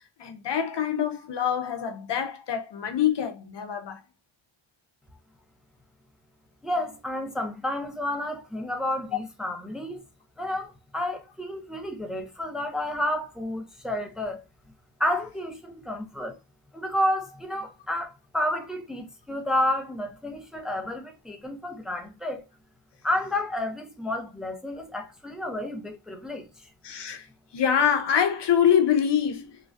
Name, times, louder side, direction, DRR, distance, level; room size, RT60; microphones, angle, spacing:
voice 1, 0.2-4.0 26.8-27.3 27.5-29.5, left 8 dB, 60° left, 0.7 m, -25 dB
voice 2, 6.6-10.0 10.4-14.4 15.0-16.4 16.7-22.4 23.0-26.7, left 1 dB, ahead, 0.6 m, -30 dB
3.1 x 2.2 x 2.5 m
cardioid pair, 50°, 48 cm